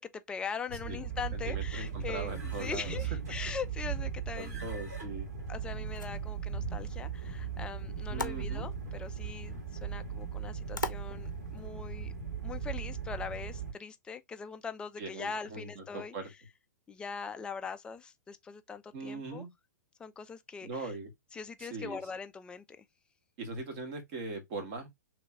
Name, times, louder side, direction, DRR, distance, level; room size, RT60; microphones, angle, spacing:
voice 1, 0.0-4.6 5.5-12.1 12.4-16.1 16.9-19.5 20.0-20.9 21.3-22.9, left 5 dB, 10° left, 0.4 m, -41 dB
sound 1, 0.7-13.7, right 6 dB, 60° right, 1.8 m, -38 dB
voice 2, 1.3-3.0 3.3-3.4 4.4-5.3 8.1-8.7 15.0-16.3 18.9-19.5 20.6-21.1 21.6-22.0 23.4-24.9, right 3 dB, 40° right, 1.4 m, -40 dB
sound 2, 5.7-11.7, left 3 dB, 85° left, 0.6 m, -44 dB
3.2 x 3.0 x 3.6 m
figure-of-eight pair, 105°, 10 cm